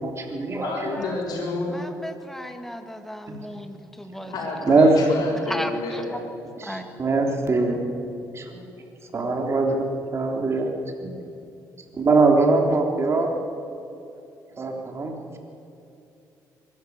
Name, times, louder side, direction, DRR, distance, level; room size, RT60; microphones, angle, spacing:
voice 1, 0.0-1.0 3.3-3.4 4.7-4.9 6.6-7.8 8.3-8.6 9.1-9.9 10.1-10.7 11.0-11.1 12.0-13.3 14.6-15.4, right 3 dB, 40° right, 2 dB, 3.5 m, -22 dB
voice 2, 0.6-1.7 4.3-6.0, left 2 dB, 65° left, 0 dB, 6.6 m, -29 dB
voice 3, 1.7-4.3 5.5-6.2 6.6-6.8, equal, 5° left, 6 dB, 2.0 m, -35 dB
23.0 x 13.5 x 9.6 m, 2.7 s
cardioid pair, 90°, 7 cm